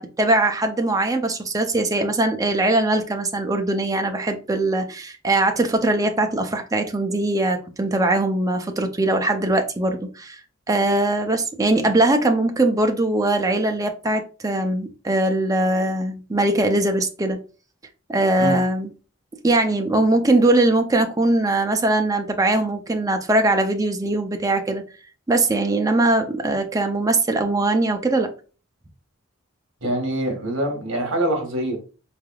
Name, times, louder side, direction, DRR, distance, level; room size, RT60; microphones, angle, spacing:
voice 1, 0.0-10.4 10.7-17.4 18.1-18.9 19.4-24.8 25.3-28.3, right 2 dB, 15° right, 5 dB, 0.4 m, -21 dB
voice 2, 29.8-31.8, right 1 dB, 60° right, 3 dB, 1.4 m, -24 dB
4.5 x 3.4 x 2.3 m, 0.36 s
head